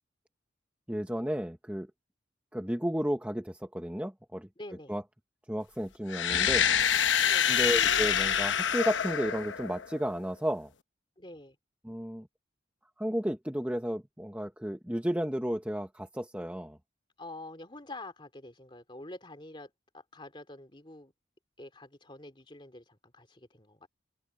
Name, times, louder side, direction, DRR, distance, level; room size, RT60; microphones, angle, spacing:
voice 1, 0.9-1.9 2.5-4.5 4.9-5.0 5.5-6.7 7.5-10.7 11.8-12.3 13.0-16.8, equal, 5° right, 1.1 m, -33 dB
voice 2, 4.6-4.9 7.2-7.6 11.2-11.6 17.2-21.1 21.6-23.9, left 2 dB, 25° left, 2.9 m, -47 dB
sound 1, 6.1-10.0, left 8 dB, 85° left, 1.0 m, -26 dB
head